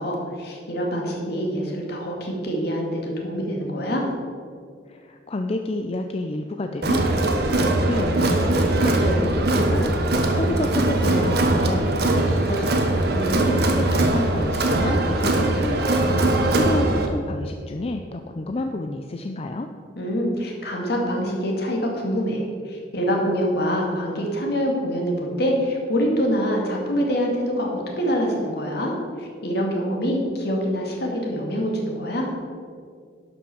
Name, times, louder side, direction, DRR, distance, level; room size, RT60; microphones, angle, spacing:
voice 1, 0.0-4.1 13.1-13.7 20.0-32.3, equal, 60° left, -1 dB, 2.3 m, -25 dB
voice 2, 4.9-12.9 13.2-16.0 16.5-19.7, left 2 dB, 35° left, 5 dB, 0.5 m, -30 dB
Crowd, 6.8-17.1, right 2 dB, 60° right, 1.2 m, -21 dB
11.5 x 5.9 x 6.3 m, 2.2 s
head